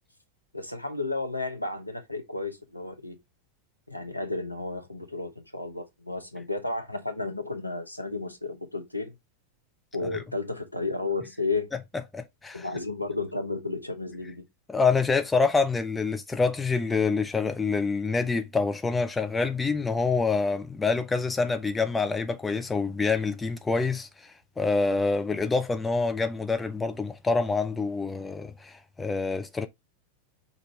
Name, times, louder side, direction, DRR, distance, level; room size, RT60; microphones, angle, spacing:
voice 1, 0.5-3.2 3.9-9.1 9.9-11.7 12.5-14.4, left 3 dB, 90° left, 0.7 m, -32 dB
voice 2, 12.1-12.7 14.7-29.7, left 4 dB, 10° left, 0.6 m, -26 dB
5.2 x 2.5 x 3.2 m
figure-of-eight pair, 90°, 0 cm